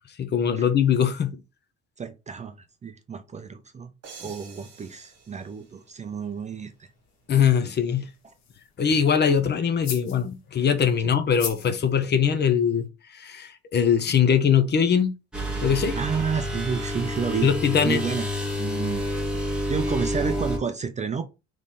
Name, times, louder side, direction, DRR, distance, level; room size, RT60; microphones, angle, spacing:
voice 1, 0.2-1.4 7.3-8.1 8.8-12.8 13.1-15.1 15.6-16.0 17.4-18.0, left 7 dB, 35° left, 0.6 m, -22 dB
voice 2, 2.0-2.5 2.8-3.9 4.2-6.9 8.2-8.3 15.9-17.5 17.8-19.1 19.7-21.2, right 6 dB, 25° right, 0.5 m, -30 dB
sound 1, 4.0-6.7, right 6 dB, 55° right, 1.3 m, -48 dB
sound 2, 5.0-12.9, left 7 dB, 65° left, 1.2 m, -43 dB
Strange machine, 15.3-20.6, equal, 5° right, 1.5 m, -29 dB
3.5 x 3.2 x 4.1 m
cardioid pair, 140°, 30 cm